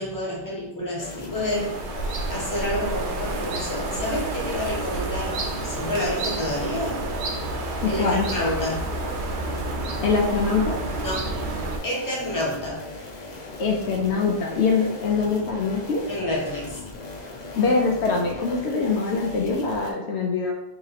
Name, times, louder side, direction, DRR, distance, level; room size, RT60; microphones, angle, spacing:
voice 1, 0.0-1.8 2.3-7.0 7.6-8.8 11.0-11.3 11.8-12.8 16.1-16.8, left 1 dB, 20° left, -5 dB, 1.0 m, -29 dB
sound 1, 1.0-19.9, left 3 dB, 45° left, 0.7 m, -38 dB
sound 2, 1.3-11.8, right 2 dB, 75° right, 0.9 m, -30 dB
voice 2, 7.8-8.3 10.0-10.8 13.6-16.0 17.6-20.5, left 4 dB, 75° left, 0 dB, 0.9 m, -23 dB
3.0 x 2.8 x 3.9 m, 0.87 s
omnidirectional pair, 1.2 m